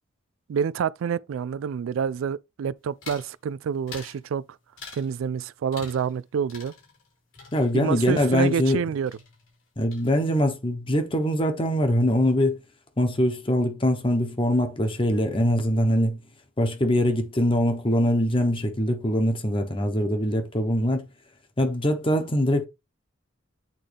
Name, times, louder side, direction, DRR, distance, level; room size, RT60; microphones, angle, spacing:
voice 1, 0.5-4.4 4.9-6.7 7.7-9.2, right 7 dB, 80° right, 0.3 m, -28 dB
sound 1, 3.0-3.3 3.9-4.2 4.8-5.1 5.7-6.2 6.5-8.8 9.1-9.6 9.9-10.5, left 5 dB, 85° left, 4.3 m, -45 dB
voice 2, 7.5-8.8 9.8-12.6 13.0-16.2 16.6-21.0 21.6-22.7, equal, 25° left, 1.1 m, -23 dB
8.6 x 3.7 x 3.4 m
head